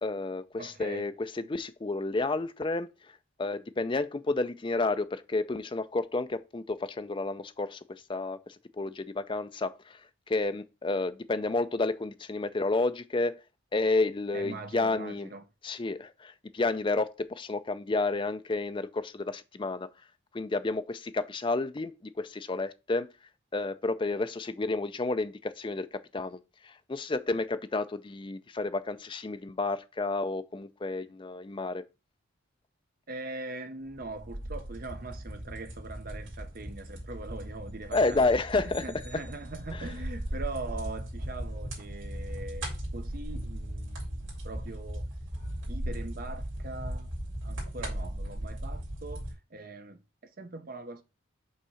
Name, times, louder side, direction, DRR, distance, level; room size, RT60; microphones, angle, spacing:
voice 1, 0.0-2.9 3.4-10.0 10.3-13.4 13.7-15.3 15.6-19.9 20.3-21.9 22.2-23.1 23.5-31.8 37.9-38.8, left 3 dB, 25° left, 0.4 m, -31 dB
voice 2, 0.6-1.1 14.3-15.5 33.1-38.2 38.5-45.1 45.6-47.1 47.4-51.0, right 3 dB, 45° right, 0.8 m, -42 dB
sound 1, 33.9-49.3, right 1 dB, 60° right, 2.9 m, -37 dB
sound 2, 37.9-40.1, left 1 dB, 10° left, 1.9 m, -53 dB
5.6 x 3.6 x 5.6 m
head